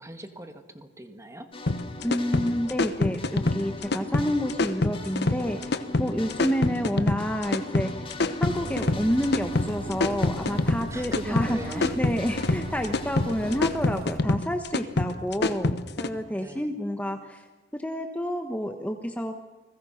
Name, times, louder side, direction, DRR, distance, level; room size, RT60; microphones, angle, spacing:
voice 1, 0.0-1.5 10.9-11.9 16.3-16.7, right 1 dB, 15° right, 7 dB, 1.8 m, -39 dB
sound 1, 1.5-13.6, left 2 dB, 30° left, 2.1 m, -41 dB
sound 2, 1.7-16.1, left 2 dB, 60° left, 1.1 m, -26 dB
voice 2, 2.0-5.7 6.0-8.1 8.4-17.5 17.7-19.3, equal, 10° left, 5 dB, 1.2 m, -29 dB
Bus, 8.5-14.2, right 2 dB, 50° right, 0.9 m, -40 dB
29.5 x 21.0 x 5.8 m, 1.2 s
head